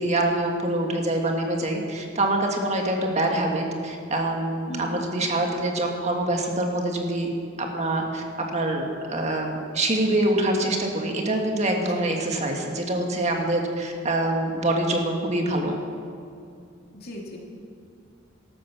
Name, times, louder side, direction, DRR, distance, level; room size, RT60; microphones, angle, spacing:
voice 1, 0.0-7.3 7.6-8.2 8.5-15.8, right 1 dB, 35° right, 2 dB, 1.7 m, -25 dB
voice 2, 4.7-5.0 11.9-12.0 17.0-17.4, equal, 55° left, -1 dB, 2.6 m, -36 dB
14.0 x 12.5 x 6.0 m, 2.4 s
head